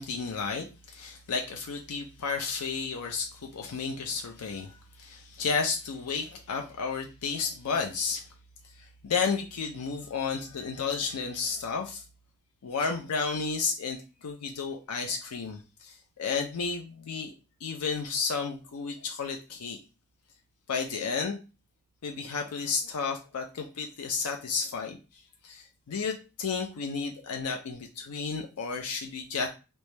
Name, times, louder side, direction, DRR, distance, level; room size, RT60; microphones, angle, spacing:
voice 1, 0.0-8.3 8.7-12.0 12.6-17.3 17.6-19.8 20.7-21.4 22.0-29.5, left 5 dB, 80° left, 3 dB, 0.5 m, -32 dB
3.2 x 3.0 x 3.2 m, 0.32 s
head